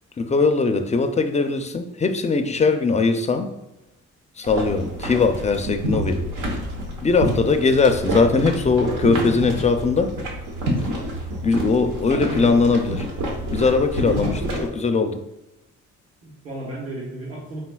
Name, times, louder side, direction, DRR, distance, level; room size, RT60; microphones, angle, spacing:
voice 1, 0.2-3.5 4.4-6.2 7.0-10.1 11.4-13.1 13.5-15.2, left 4 dB, 25° left, 7 dB, 0.4 m, -20 dB
sound 1, 4.4-14.7, equal, 85° right, 1.0 m, -28 dB
voice 2, 9.2-9.5 12.2-12.5 14.0-14.7 16.2-17.6, right 2 dB, 50° right, -3 dB, 1.2 m, -33 dB
4.1 x 4.1 x 2.2 m, 0.95 s
cardioid pair, 90°, 30 cm